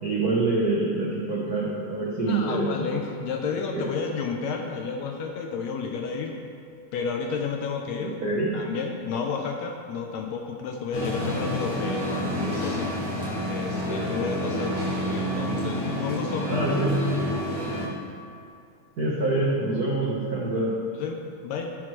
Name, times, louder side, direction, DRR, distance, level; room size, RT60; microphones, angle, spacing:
voice 1, 0.0-2.9 3.7-4.0 8.0-8.6 16.4-17.1 19.0-20.7, right 2 dB, 80° right, -5 dB, 0.8 m, -26 dB
voice 2, 2.3-6.4 6.9-8.2 8.5-13.1 13.5-14.8 15.1-16.6 20.9-21.7, left 5 dB, 75° left, 3 dB, 1.7 m, -32 dB
sound 1, 10.9-17.9, equal, 50° left, 2.3 m, -28 dB
15.5 x 5.9 x 3.1 m, 2.5 s
omnidirectional pair, 3.5 m